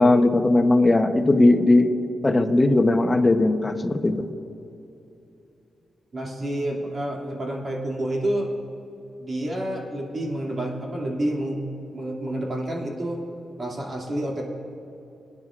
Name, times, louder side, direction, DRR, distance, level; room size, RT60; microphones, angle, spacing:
voice 1, 0.0-1.9 2.2-4.3, left 2 dB, 25° left, 8 dB, 0.8 m, -18 dB
voice 2, 6.1-8.5 9.2-11.6 11.9-13.2 13.6-14.4, right 1 dB, 45° right, -2 dB, 2.4 m, -29 dB
21.0 x 9.9 x 2.5 m, 2.9 s
cardioid pair, 80°, 0 cm